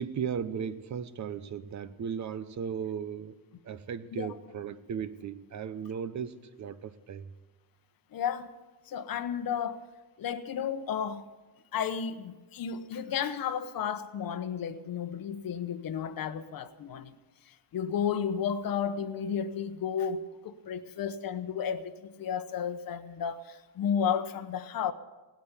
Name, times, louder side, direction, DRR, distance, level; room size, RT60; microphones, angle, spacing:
voice 1, 0.0-3.4 3.6-7.3, right 7 dB, 35° right, 0.8 m, -36 dB
voice 2, 8.1-8.5 8.9-9.9 10.2-11.3 11.7-17.2 17.5-24.9, left 7 dB, 45° left, 1.0 m, -33 dB
17.5 x 8.9 x 8.2 m
cardioid pair, 130°, 48 cm